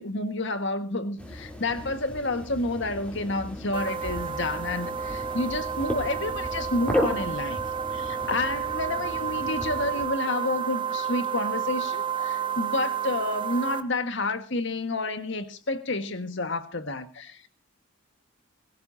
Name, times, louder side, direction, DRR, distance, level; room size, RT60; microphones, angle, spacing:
voice 1, 0.0-7.6 7.9-17.5, left 2 dB, 55° left, 1.7 m, -30 dB
sound 1, 1.2-10.1, left 1 dB, 5° left, 3.6 m, -35 dB
sound 2, 3.7-13.8, right 8 dB, 25° right, 1.0 m, -31 dB
22.5 x 16.5 x 2.8 m
head